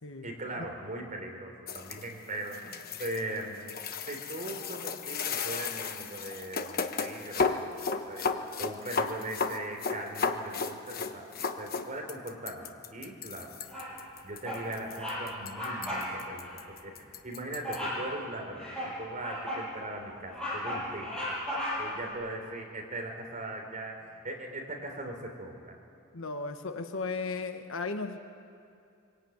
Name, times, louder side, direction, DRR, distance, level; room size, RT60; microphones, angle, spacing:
voice 1, 0.2-3.7 4.0-11.3 11.6-13.6 14.2-21.3 21.8-25.7, right 1 dB, 40° right, 2 dB, 3.6 m, -40 dB
sound 1, 1.7-17.8, left 5 dB, 45° left, 1.1 m, -34 dB
Bird vocalization bird call bird song, 13.7-14.1 14.4-14.7 15.0-15.2 15.5-16.1 16.4-16.6 17.6-18.1 18.6-19.7 20.1-22.0, left 1 dB, 5° left, 7.5 m, -35 dB
voice 2, 26.1-28.2, left 3 dB, 65° left, 7 dB, 1.2 m, -35 dB
24.0 x 17.0 x 9.2 m, 2.5 s
head